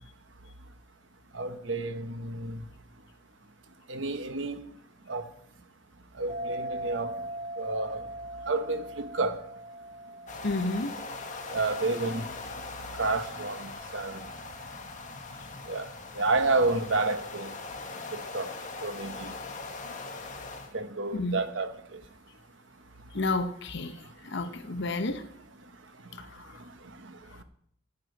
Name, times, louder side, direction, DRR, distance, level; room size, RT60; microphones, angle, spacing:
voice 1, 1.3-2.6 3.9-4.6 5.1-5.2 6.2-7.1 7.6-8.0 8.5-9.4 11.5-12.3 13.0-14.2 15.7-15.9 16.2-17.5 18.3-18.5 18.8-19.3 20.7-21.7, right 3 dB, 70° right, 1.0 m, -29 dB
sound 1, 6.3-13.3, right 1 dB, 30° right, 5.1 m, -41 dB
sound 2, 10.3-20.7, left 3 dB, 40° left, 1.2 m, -41 dB
voice 2, 10.4-10.9 21.1-21.4 23.1-23.9 24.3-25.2, left 2 dB, 65° left, 0.9 m, -30 dB
10.5 x 9.7 x 4.0 m
head